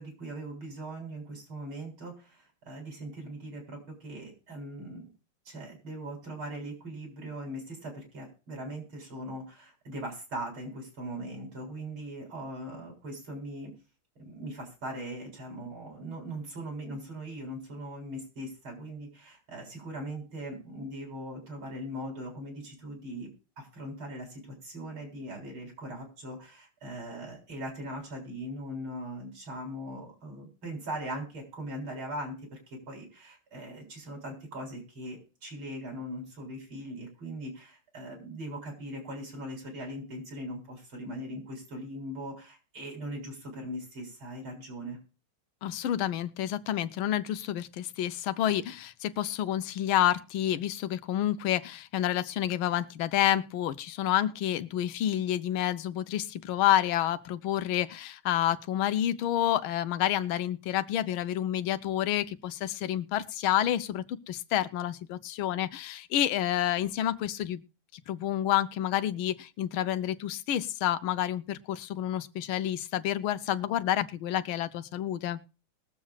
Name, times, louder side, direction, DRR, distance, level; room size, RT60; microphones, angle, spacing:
voice 1, 0.0-5.1 5.5-13.7 14.2-23.3 23.6-32.6 32.9-45.0, right 1 dB, 80° right, 0 dB, 4.8 m, -40 dB
voice 2, 45.6-67.6 67.9-75.4, left 12 dB, 85° left, 14 dB, 1.5 m, -29 dB
21.5 x 7.3 x 2.4 m, 0.33 s
omnidirectional pair, 2.2 m